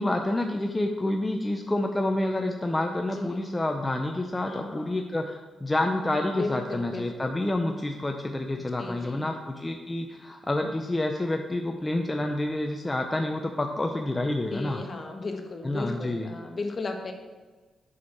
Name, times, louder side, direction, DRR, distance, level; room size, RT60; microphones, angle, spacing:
voice 1, 0.0-14.8 15.6-16.3, left 1 dB, 20° left, 3 dB, 0.6 m, -28 dB
voice 2, 4.5-4.9 6.4-7.3 8.5-9.4 14.5-17.1, left 3 dB, 40° left, 4 dB, 1.2 m, -35 dB
7.4 x 6.3 x 4.2 m, 1.3 s
cardioid pair, 75°, 0 cm